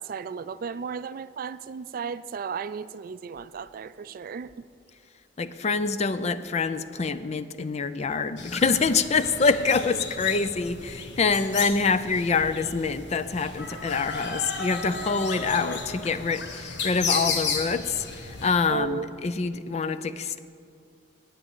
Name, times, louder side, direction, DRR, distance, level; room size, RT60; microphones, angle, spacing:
voice 1, 0.0-4.5 18.7-19.1, right 6 dB, 55° right, 15 dB, 0.4 m, -34 dB
voice 2, 5.4-20.4, left 4 dB, 40° left, 12 dB, 0.5 m, -26 dB
sound 1, 8.4-18.5, left 4 dB, 75° left, 1.2 m, -33 dB
8.9 x 8.7 x 8.2 m, 2.2 s
head